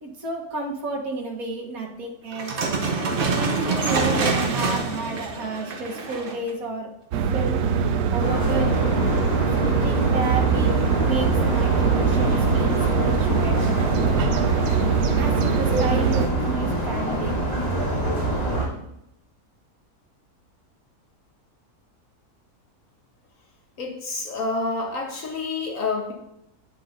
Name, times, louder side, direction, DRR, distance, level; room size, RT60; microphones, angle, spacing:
voice 1, 0.0-2.8 3.3-6.9 7.3-7.6 8.1-9.0 9.5-13.9 15.2-17.4, right 3 dB, 65° right, -1 dB, 1.7 m, -31 dB
sound 1, 2.3-6.5, right 4 dB, 45° right, 0.8 m, -25 dB
sound 2, 7.1-16.3, right 6 dB, 80° right, 1.1 m, -23 dB
sound 3, 8.2-18.6, right 1 dB, 25° left, 3.1 m, -25 dB
voice 2, 23.8-26.1, left 3 dB, 60° left, 2 dB, 1.4 m, -28 dB
9.1 x 6.9 x 2.6 m, 0.81 s
omnidirectional pair, 1.6 m